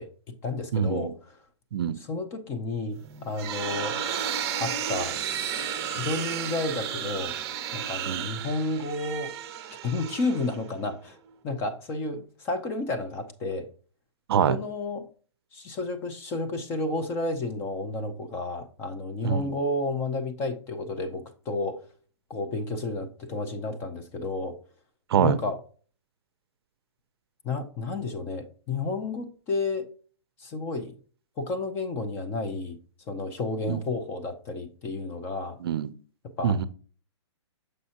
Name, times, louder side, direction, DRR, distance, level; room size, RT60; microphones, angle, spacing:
voice 1, 0.0-1.4 2.0-4.0 4.6-5.2 5.9-7.4 7.7-9.3 9.8-11.2 11.4-13.7 14.4-15.1 15.5-21.8 22.3-24.6 25.2-25.6 27.4-29.8 30.4-30.9 31.4-32.8 33.1-35.6 36.4-36.6, left 2 dB, 15° left, 0.5 m, -31 dB
voice 2, 0.7-1.1 1.7-2.0 6.0-6.1 8.1-8.3 14.3-14.6 19.2-19.5 25.1-25.4 33.7-33.8 35.6-35.9 36.4-36.7, right 8 dB, 55° right, 0.5 m, -25 dB
sound 1, 3.0-10.9, right 8 dB, 20° right, 0.7 m, -33 dB
6.4 x 5.3 x 2.8 m
hypercardioid pair, 160°, 15 cm